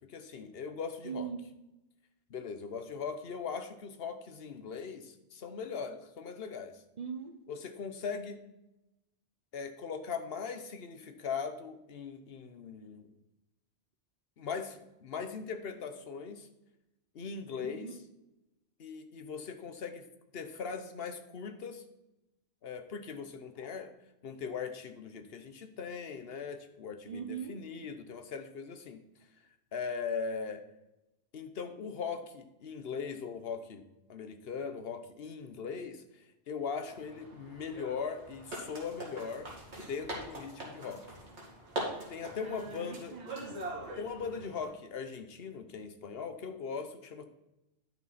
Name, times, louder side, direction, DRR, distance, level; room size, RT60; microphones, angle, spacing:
voice 1, 0.1-1.3 2.3-6.7 7.5-8.4 9.5-13.1 14.4-16.5 17.1-17.9 18.8-20.0 20.3-21.8 22.6-23.9 24.2-29.0 29.7-30.6 31.3-33.8 34.1-39.5 39.8-41.0 42.1-43.1 44.0-47.2, left 5 dB, 60° left, 8 dB, 1.1 m, -40 dB
voice 2, 1.0-1.5 7.0-7.4 17.6-18.0 27.0-27.6 42.3-43.7, right 6 dB, 45° right, 7 dB, 0.8 m, -41 dB
sound 1, 36.8-44.6, right 1 dB, 80° right, 2.5 m, -43 dB
10.5 x 6.6 x 4.2 m, 0.94 s
omnidirectional pair, 1.1 m